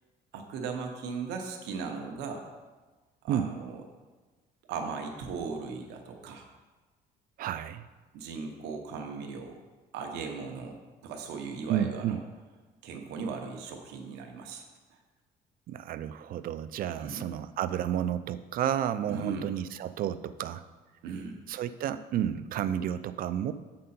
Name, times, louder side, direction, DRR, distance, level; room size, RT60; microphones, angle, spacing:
voice 1, 0.3-2.5 3.2-3.8 4.7-6.5 8.1-9.6 9.9-12.2 12.8-14.6 14.9-15.0 17.0-17.3 19.1-19.5 21.0-21.4, right 5 dB, 85° right, 3 dB, 1.0 m, -38 dB
voice 2, 7.4-7.9 11.7-12.2 15.7-20.6 21.5-23.5, right 10 dB, 60° right, 13 dB, 0.4 m, -31 dB
7.4 x 5.3 x 4.3 m, 1.3 s
cardioid pair, 110°, 17 cm